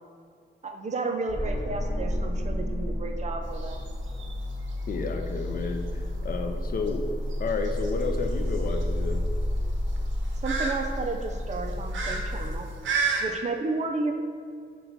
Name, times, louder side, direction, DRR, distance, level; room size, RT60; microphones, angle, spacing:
voice 1, 0.6-3.8 10.4-12.7 13.2-14.1, right 3 dB, 40° right, 4 dB, 0.4 m, -32 dB
sound 1, 1.3-12.6, left 1 dB, 10° left, 1.0 m, -31 dB
sound 2, 3.4-13.2, right 5 dB, 85° right, 0.6 m, -35 dB
voice 2, 4.9-7.1 7.4-9.2, left 4 dB, 50° left, 5 dB, 0.4 m, -31 dB
5.7 x 2.2 x 3.9 m, 2.2 s
wide cardioid pair, 135°, 19 cm